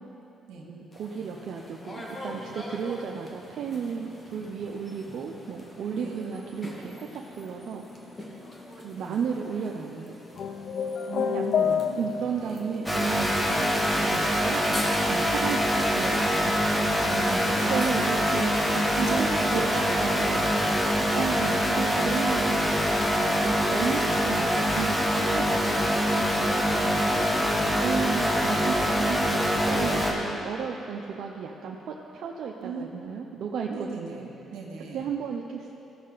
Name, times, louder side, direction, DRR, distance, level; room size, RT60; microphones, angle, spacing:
voice 1, 0.7-7.8 8.8-10.1 11.3-14.6 15.1-16.9 17.7-18.6 19.1-19.7 21.1-22.6 23.4-26.0 26.3-26.5 27.8-34.3 34.9-35.7, right 6 dB, 70° right, 0 dB, 0.6 m, -34 dB
sound 1, 0.9-18.8, left 1 dB, 30° left, 1.6 m, -44 dB
sound 2, 10.4-12.4, left 7 dB, 65° left, 0.5 m, -27 dB
voice 2, 11.1-12.7 17.0-17.9 18.5-21.1 23.2-23.4 26.1-27.8 32.6-32.9 33.7-35.1, right 4 dB, 90° right, 0 dB, 1.5 m, -37 dB
sound 3, 12.9-30.1, equal, 10° left, 1.5 m, -24 dB
15.0 x 6.4 x 4.0 m, 3.0 s
cardioid pair, 90°, 0 cm